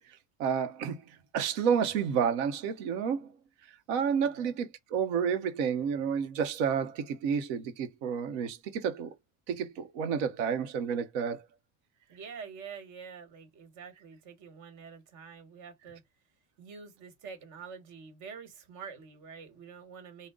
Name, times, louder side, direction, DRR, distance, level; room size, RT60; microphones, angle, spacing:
voice 1, 0.4-1.0 1.3-3.3 3.9-9.1 9.5-11.4, right 7 dB, 75° right, 0.9 m, -30 dB
voice 2, 4.2-4.5 12.1-16.0 16.6-20.3, right 6 dB, 50° right, 1.5 m, -47 dB
3.8 x 2.1 x 3.6 m
cardioid pair, 155°, 37 cm